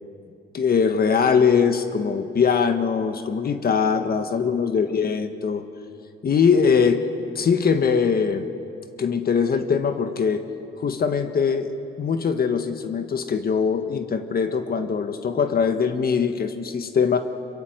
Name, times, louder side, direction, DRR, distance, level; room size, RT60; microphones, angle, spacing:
voice 1, 0.5-5.6 6.2-7.0 7.3-8.5 9.0-10.4 10.8-17.2, left 6 dB, 50° left, 7 dB, 1.6 m, -22 dB
25.5 x 22.5 x 8.1 m, 2.5 s
cardioid pair, 90°, 20 cm